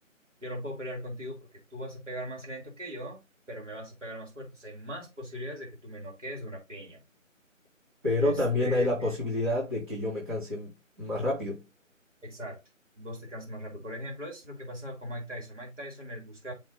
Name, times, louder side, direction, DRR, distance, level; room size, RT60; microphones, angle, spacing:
voice 1, 0.4-3.2 3.5-7.0 8.2-9.1 12.2-12.6 13.0-16.5, equal, 65° right, 4.1 m, -40 dB
voice 2, 8.0-10.7 11.0-11.6, left 1 dB, 40° right, 3.3 m, -28 dB
7.0 x 2.9 x 5.3 m
figure-of-eight pair, 160°, 40 cm